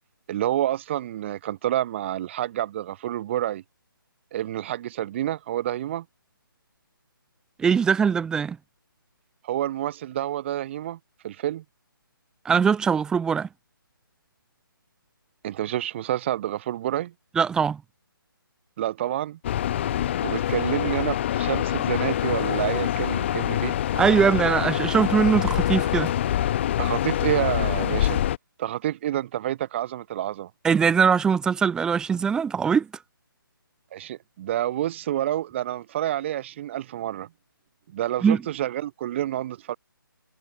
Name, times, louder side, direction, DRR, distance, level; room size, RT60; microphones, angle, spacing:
voice 1, 0.3-3.6 4.3-6.0 9.4-11.0 11.2-11.6 15.4-17.1 18.8-19.4 20.2-23.7 26.8-28.2 28.6-30.5 33.9-37.3 37.9-39.7, right 12 dB, 30° right, 6.2 m, -28 dB
voice 2, 7.6-8.6 12.4-13.5 17.4-17.8 24.0-26.1 30.6-32.9 38.2-38.4, right 6 dB, 5° right, 0.9 m, -21 dB
sound 1, 19.4-28.4, left 11 dB, 30° left, 1.0 m, -25 dB
figure-of-eight pair, 150°, 12 cm